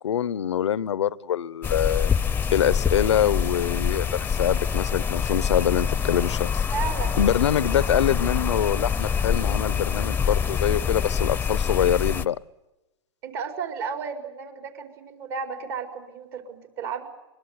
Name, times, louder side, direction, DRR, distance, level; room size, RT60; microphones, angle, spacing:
voice 1, 0.0-2.1 2.5-6.6 7.2-12.4, left 9 dB, 85° left, 21 dB, 0.8 m, -24 dB
sound 1, 1.6-12.3, left 7 dB, 15° left, 0.7 m, -25 dB
voice 2, 6.7-7.2 13.2-17.1, right 6 dB, 55° right, 5 dB, 4.7 m, -33 dB
24.0 x 22.0 x 8.0 m, 1.0 s
hypercardioid pair, 115°, 14 cm